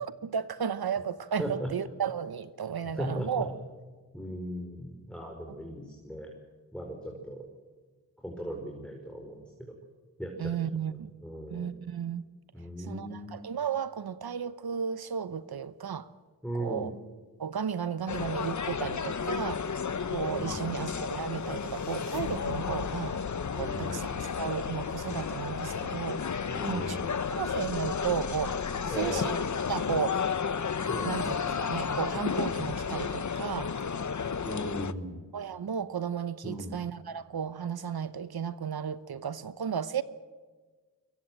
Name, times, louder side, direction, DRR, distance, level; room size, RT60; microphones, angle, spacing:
voice 1, 0.0-3.5 10.4-11.1 11.5-12.2 12.8-16.1 16.6-16.9 17.4-19.6 20.1-23.2 23.5-26.2 26.6-27.0 27.3-28.6 28.8-29.4 29.7-30.2 31.0-31.3 31.6-33.7 35.3-40.0, right 7 dB, 65° right, 14 dB, 1.0 m, -34 dB
voice 2, 1.4-1.7 2.9-3.5 4.1-6.3 6.7-7.4 8.2-9.8 10.2-10.6 11.2-11.7 12.5-13.4 16.4-16.9 20.4-20.9 23.6-24.2 26.5-27.3 28.9-29.3 30.9-31.2 34.4-35.2 36.4-36.8, equal, ahead, 1 dB, 4.9 m, -38 dB
sound 1, 18.1-34.9, left 6 dB, 45° left, 1.0 m, -33 dB
sound 2, 21.2-31.4, left 8 dB, 85° left, 1.1 m, -43 dB
22.5 x 22.0 x 7.8 m, 1.4 s
cardioid pair, 45°, 40 cm